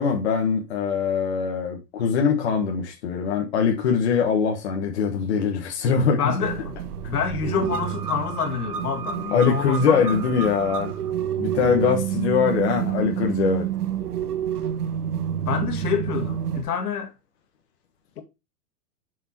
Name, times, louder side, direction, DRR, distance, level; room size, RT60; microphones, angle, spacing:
voice 1, 0.0-6.2 9.3-10.9 11.4-13.7, left 6 dB, 45° left, 1.4 m, -22 dB
voice 2, 6.1-6.7 7.1-10.2 15.5-17.1 18.2-18.3, left 7 dB, 70° left, 2.3 m, -27 dB
sound 1, 6.4-16.6, right 9 dB, 75° right, 1.4 m, -28 dB
6.9 x 6.3 x 2.8 m
hypercardioid pair, 175°, 47 cm